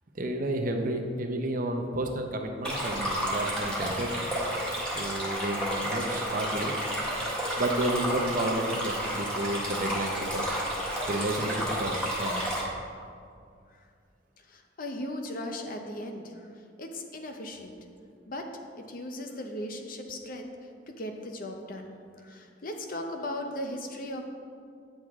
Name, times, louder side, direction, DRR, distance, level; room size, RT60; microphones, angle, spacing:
voice 1, 0.1-4.1 4.8-6.7 7.6-10.6 11.1-12.4, right 1 dB, 50° right, 4 dB, 0.7 m, -31 dB
Stream, 2.6-12.6, equal, 5° left, 1.5 m, -31 dB
voice 2, 14.4-16.5 16.8-17.8 18.3-18.4 18.9-20.5 20.9-24.2, left 1 dB, 50° left, 4 dB, 0.7 m, -37 dB
9.0 x 6.4 x 3.6 m, 2.3 s
head